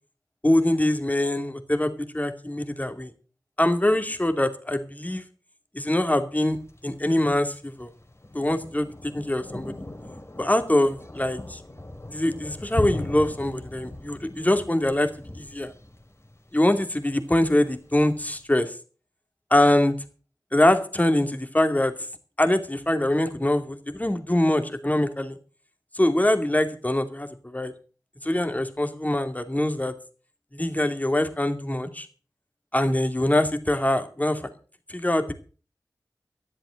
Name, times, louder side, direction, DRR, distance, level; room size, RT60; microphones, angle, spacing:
voice 1, 0.4-3.1 3.6-5.2 5.7-6.6 6.8-7.9 8.3-9.7 10.4-11.6 12.1-15.1 15.4-15.7 16.5-18.7 19.5-20.0 20.5-21.9 22.4-25.4 25.9-27.7 28.2-29.9 30.5-32.1 32.7-34.4 34.9-35.3, left 1 dB, 20° left, 7 dB, 2.5 m, -23 dB
Thunder, 6.5-18.4, left 1 dB, 35° left, 3.0 m, -39 dB
13.0 x 11.0 x 6.5 m, 0.39 s
wide cardioid pair, 50°, 7 cm